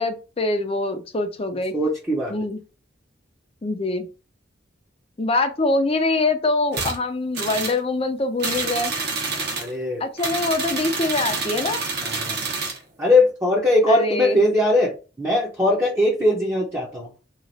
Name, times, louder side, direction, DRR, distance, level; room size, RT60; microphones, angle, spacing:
voice 1, 0.0-1.7 2.3-2.6 3.6-4.1 5.2-8.9 10.0-11.8 13.9-14.4, left 2 dB, 30° left, 7 dB, 0.5 m, -24 dB
voice 2, 1.7-2.3 9.6-10.0 12.0-12.5 13.0-14.9 15.2-17.1, left 1 dB, 15° right, -4 dB, 0.7 m, -20 dB
sound 1, 6.7-7.0 7.3-7.8 8.4-9.7 10.2-12.8, right 4 dB, 60° right, 1.0 m, -27 dB
3.0 x 2.4 x 4.0 m, 0.33 s
head